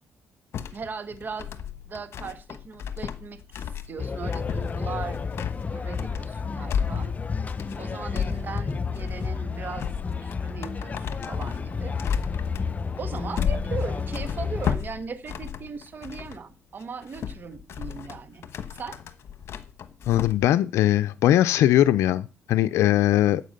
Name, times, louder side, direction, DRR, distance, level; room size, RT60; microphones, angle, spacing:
sound 1, 0.5-16.4 16.8-20.4, left 8 dB, 65° left, 1.2 m, -34 dB
voice 1, 0.7-1.6 1.8-5.3 5.6-7.1 7.7-12.0 13.0-19.0, right 5 dB, 45° right, 11 dB, 1.6 m, -38 dB
sound 2, 4.0-14.8, left 5 dB, 30° left, 0.7 m, -31 dB
voice 2, 20.1-23.4, left 13 dB, 85° left, 13 dB, 0.5 m, -20 dB
9.0 x 8.2 x 6.6 m, 0.34 s
cardioid pair, 85°, 5 cm